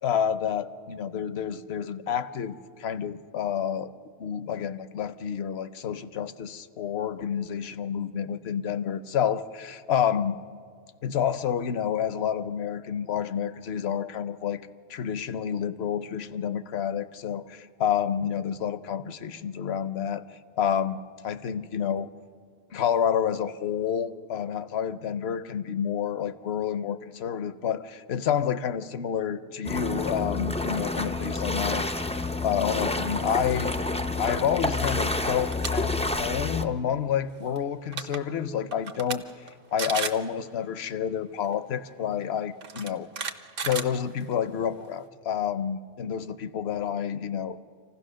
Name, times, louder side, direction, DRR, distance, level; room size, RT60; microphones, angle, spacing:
voice 1, 0.0-3.9 4.2-10.4 11.0-20.2 20.6-21.0 21.2-22.1 22.7-31.9 32.4-33.7 34.2-35.9 36.2-43.3 43.6-47.6, left 8 dB, 65° left, 13 dB, 0.9 m, -29 dB
sound 1, 29.6-36.6, left 2 dB, 10° left, 0.3 m, -29 dB
sound 2, 35.4-35.7 36.1-36.4 37.6-37.7 37.9-38.2 38.7-39.2 39.5-39.6 39.8-40.2 41.4-41.5 42.6-44.5, right 5 dB, 55° right, 1.0 m, -33 dB
27.0 x 16.0 x 6.4 m, 2.1 s
omnidirectional pair, 1.2 m